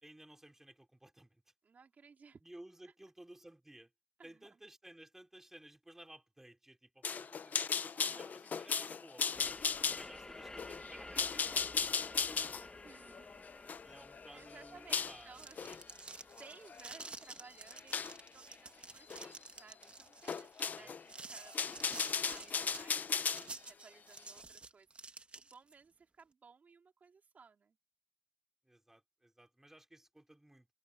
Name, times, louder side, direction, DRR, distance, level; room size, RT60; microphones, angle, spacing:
voice 1, 0.0-1.4 2.4-3.9 4.2-7.9 8.2-9.6 9.9-11.7 12.0-12.7 13.8-15.4 15.6-15.8 20.7-21.0 28.6-30.7, right 1 dB, 15° right, 3.8 m, -57 dB
voice 2, 1.6-2.4 4.2-4.6 7.9-8.4 10.1-10.5 12.8-13.4 14.3-15.8 16.4-27.8, right 5 dB, 75° right, 3.0 m, -59 dB
sound 1, 7.0-15.2 15.6-15.8 16.4-17.1 17.9-18.2 19.1-19.3 19.6-19.7 20.3-21.0 21.4-23.5, left 6 dB, 80° left, 0.6 m, -36 dB
sound 2, 9.3-18.7, left 2 dB, 25° left, 1.1 m, -53 dB
sound 3, 15.1-25.7, right 3 dB, 40° right, 1.5 m, -50 dB
wide cardioid pair, 95°, 3 cm